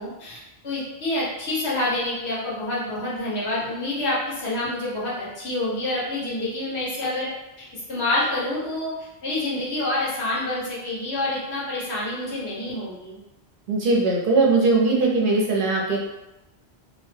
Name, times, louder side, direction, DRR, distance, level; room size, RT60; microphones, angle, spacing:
voice 1, 0.0-7.3 7.6-8.9 9.2-13.2, left 2 dB, 80° left, -7 dB, 1.3 m, -27 dB
voice 2, 13.7-16.1, right 3 dB, 60° right, -2 dB, 0.7 m, -20 dB
2.6 x 2.2 x 3.2 m, 0.96 s
omnidirectional pair, 1.1 m